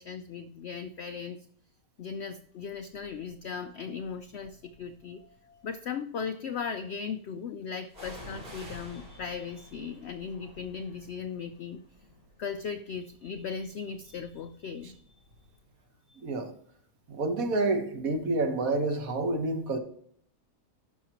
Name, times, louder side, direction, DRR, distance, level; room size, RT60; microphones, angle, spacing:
voice 1, 0.0-1.4 2.0-11.8 12.4-15.1 16.1-16.2, left 6 dB, 85° left, 9 dB, 0.5 m, -38 dB
sound 1, 3.0-3.3 4.1-5.0 7.9-15.5 15.8-15.9, equal, 30° right, 4.3 m, -50 dB
voice 2, 16.2-16.5 17.1-19.8, right 2 dB, 60° right, 5 dB, 1.6 m, -28 dB
11.5 x 6.3 x 2.9 m, 0.62 s
omnidirectional pair, 1.7 m